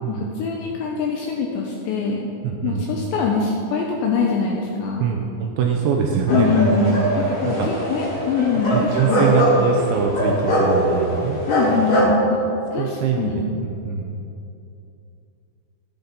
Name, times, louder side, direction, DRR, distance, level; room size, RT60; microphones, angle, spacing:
voice 1, 0.1-2.3 2.6-5.0 6.3-7.0 7.4-9.3 11.5-12.4 12.7-13.5, left 5 dB, 85° left, -1 dB, 2.6 m, -23 dB
voice 2, 2.4-2.9 5.0-7.1 7.4-7.7 8.7-11.4 11.7-11.8 12.7-14.2, right 6 dB, 80° right, 1 dB, 2.8 m, -23 dB
sound 1, 6.3-12.0, equal, 40° left, 2.6 m, -22 dB
14.0 x 10.0 x 4.1 m, 2.7 s
omnidirectional pair, 6.0 m